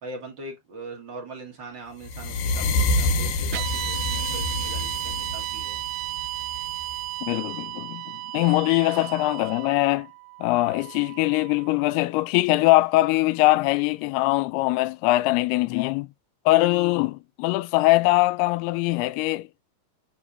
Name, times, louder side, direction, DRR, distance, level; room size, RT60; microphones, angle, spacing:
voice 1, 0.0-5.8, right 2 dB, 40° right, 2.0 m, -41 dB
sound 1, 2.0-7.1, left 2 dB, 70° left, 2.3 m, -27 dB
sound 2, 3.5-11.8, right 19 dB, 85° right, 2.6 m, -34 dB
voice 2, 7.2-8.0 8.3-10.1 10.4-16.1 16.5-19.5, left 19 dB, 85° left, 2.6 m, -22 dB
10.0 x 3.7 x 2.6 m
omnidirectional pair, 4.6 m